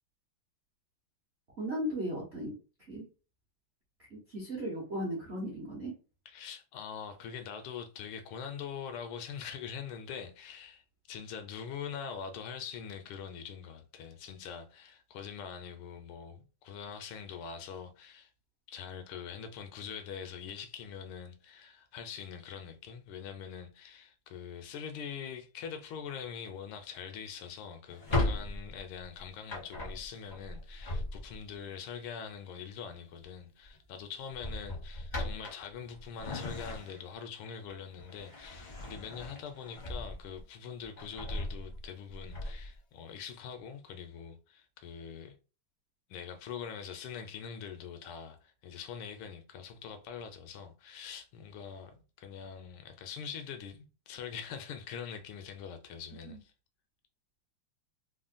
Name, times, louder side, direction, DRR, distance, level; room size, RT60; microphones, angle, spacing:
voice 1, 1.6-2.5 2.9-3.0 4.1-5.9 56.2-56.4, equal, 65° right, 0.6 m, -36 dB
voice 2, 6.3-10.8 11.1-18.3 18.7-45.3 46.1-56.5, left 7 dB, 80° left, 1.4 m, -43 dB
Drawer open or close, 27.9-31.6 33.0-33.3 33.7-33.8 34.3-37.2 37.7-40.4 40.8-42.8, left 1 dB, 50° left, 0.5 m, -37 dB
3.6 x 2.1 x 2.4 m
omnidirectional pair, 2.4 m